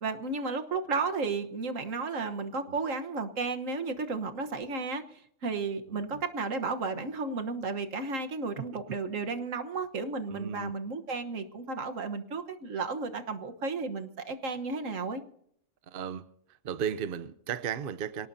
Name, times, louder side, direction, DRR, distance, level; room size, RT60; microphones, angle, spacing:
voice 1, 0.0-15.2, right 4 dB, 85° right, 7 dB, 1.6 m, -33 dB
voice 2, 5.9-6.2 8.7-8.8 10.3-10.7 15.9-16.3 16.6-18.3, right 8 dB, 50° right, 13 dB, 0.8 m, -35 dB
25.5 x 18.5 x 2.7 m, 0.69 s
omnidirectional pair, 1.3 m